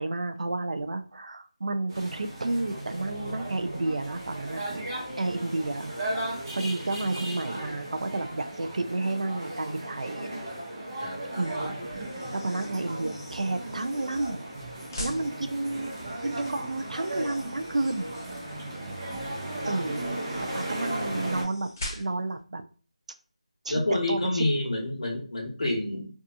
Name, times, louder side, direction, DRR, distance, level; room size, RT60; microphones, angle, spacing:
voice 1, 0.0-6.3 6.5-10.4 11.4-12.1 12.4-14.5 15.0-16.0 16.2-18.1 19.6-20.1 20.5-22.6 23.7-23.8 24.1-24.4, right 2 dB, 70° right, 8 dB, 0.3 m, -31 dB
sound 1, 1.9-21.4, right 1 dB, 30° right, 0.6 m, -36 dB
sound 2, 11.2-22.4, left 1 dB, 25° left, 0.5 m, -45 dB
voice 2, 23.7-26.1, left 2 dB, 50° left, -1 dB, 0.9 m, -28 dB
2.6 x 2.3 x 2.4 m, 0.41 s
figure-of-eight pair, 170°, 4 cm